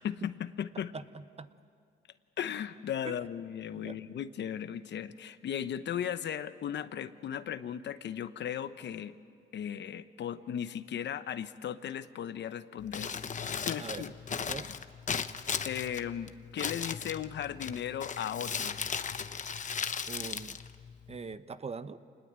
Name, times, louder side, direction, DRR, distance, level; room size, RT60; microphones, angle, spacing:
voice 1, 0.0-0.9 2.4-9.1 9.5-13.1 13.5-14.1 15.6-18.8, left 9 dB, 60° left, 12 dB, 1.0 m, -36 dB
voice 2, 0.9-1.5 3.0-3.2 3.8-4.0 13.8-14.7 20.1-20.6 21.1-22.0, right 5 dB, 30° right, 13 dB, 0.9 m, -42 dB
Crumpling crinkling, 12.8-21.4, left 6 dB, 40° left, 1.0 m, -37 dB
27.0 x 20.5 x 8.9 m, 2.2 s
cardioid pair, 90°, 20 cm